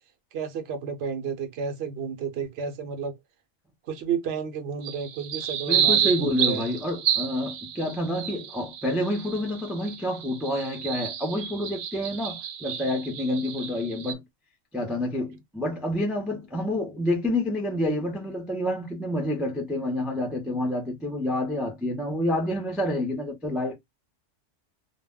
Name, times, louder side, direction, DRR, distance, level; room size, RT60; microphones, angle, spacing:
voice 1, 0.3-3.1 3.8-6.7, right 6 dB, 60° right, 0.9 m, -32 dB
sound 1, 4.8-14.1, right 9 dB, 90° right, 0.9 m, -30 dB
voice 2, 5.7-14.2 14.7-23.8, left 1 dB, ahead, 0.4 m, -28 dB
2.2 x 2.1 x 3.5 m
omnidirectional pair, 1.3 m